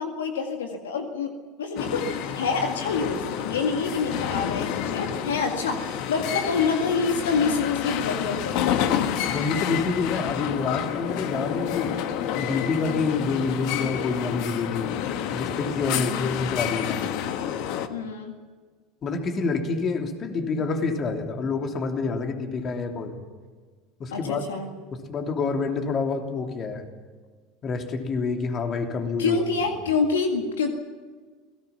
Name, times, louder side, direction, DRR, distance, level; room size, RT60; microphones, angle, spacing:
voice 1, 0.0-1.3 1.6-9.0 15.9-16.3 17.9-18.3 24.1-24.7 29.2-30.7, left 5 dB, 80° left, 4 dB, 2.0 m, -27 dB
sound 1, 1.8-17.9, left 9 dB, 60° left, 1.5 m, -29 dB
voice 2, 9.3-12.0 12.3-14.9 15.3-17.0 19.0-23.2 24.0-24.4 24.9-26.9 27.6-29.4, left 4 dB, 40° left, 4 dB, 3.1 m, -27 dB
28.5 x 18.0 x 5.9 m, 1.5 s
hypercardioid pair, 80°, 0 cm